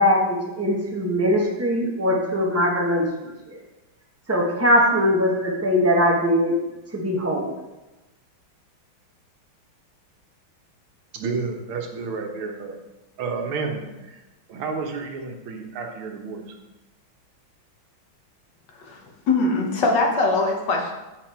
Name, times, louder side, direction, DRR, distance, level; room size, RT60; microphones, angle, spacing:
voice 1, 0.0-3.6 4.3-6.5 6.9-7.5, equal, 10° right, -2 dB, 0.7 m, -21 dB
voice 2, 11.1-12.8 13.2-14.2 14.5-16.4, right 4 dB, 85° right, 2 dB, 1.9 m, -30 dB
voice 3, 18.8-20.9, left 3 dB, 60° left, 0 dB, 1.6 m, -22 dB
7.7 x 5.3 x 4.3 m, 1.0 s
omnidirectional pair, 2.3 m